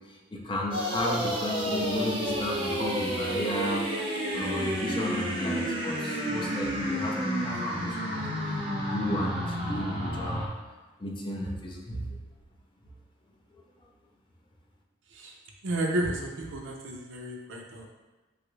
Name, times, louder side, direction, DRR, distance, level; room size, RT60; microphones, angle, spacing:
voice 1, 0.3-3.8 4.3-8.2 8.8-10.4 11.0-12.0, left 1 dB, 25° left, -1 dB, 0.4 m, -33 dB
sound 1, 0.7-10.5, equal, 25° right, 0.6 m, -31 dB
voice 2, 15.6-17.9, right 1 dB, 80° right, 0 dB, 0.5 m, -32 dB
3.3 x 2.4 x 3.0 m, 1.2 s
head